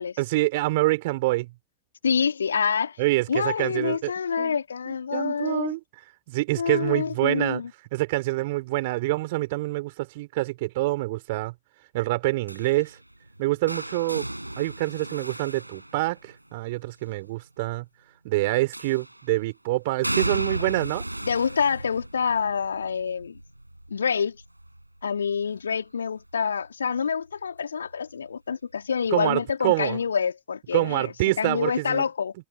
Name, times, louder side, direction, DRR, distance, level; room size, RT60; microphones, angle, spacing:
voice 1, 0.2-1.5 3.0-4.1 4.4-4.6 4.9-5.8 6.3-7.6 7.9-11.5 11.9-13.0 13.4-14.3 14.6-17.8 18.2-21.0 29.1-30.0 30.7-32.0, right 20 dB, 50° right, 4.2 m, -26 dB
voice 2, 2.0-3.0 3.3-5.7 6.6-7.7 21.2-23.4 23.9-24.4 25.0-32.3, left 6 dB, 70° left, 3.2 m, -27 dB
sound 1, 12.5-16.5 18.7-19.3 20.0-25.8 26.2-26.6 27.8-27.9, right 1 dB, 85° right, 6.5 m, -35 dB
figure-of-eight pair, 90°, 0 cm